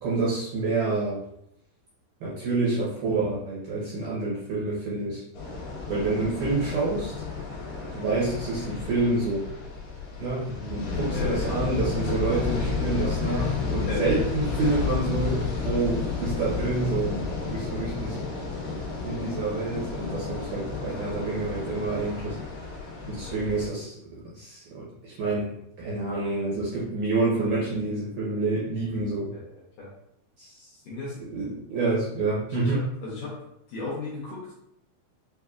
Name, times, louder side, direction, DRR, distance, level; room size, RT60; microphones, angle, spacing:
voice 1, 0.0-1.2 2.2-5.2 5.9-7.1 7.9-9.5 10.2-18.2 19.0-22.4 23.1-29.3 30.4-30.7 31.3-32.8, right 3 dB, 75° right, -7 dB, 1.9 m, -28 dB
sound 1, 5.3-23.7, left 4 dB, 55° left, 2.6 m, -31 dB
voice 2, 10.5-11.6 13.2-14.3 17.9-18.3 20.7-20.8 23.2-23.4 29.3-29.5 29.8-29.9 30.9-31.2 32.6-33.4 33.7-34.6, left 3 dB, 75° left, -5 dB, 2.0 m, -37 dB
6.2 x 2.6 x 2.3 m, 0.78 s
omnidirectional pair, 4.6 m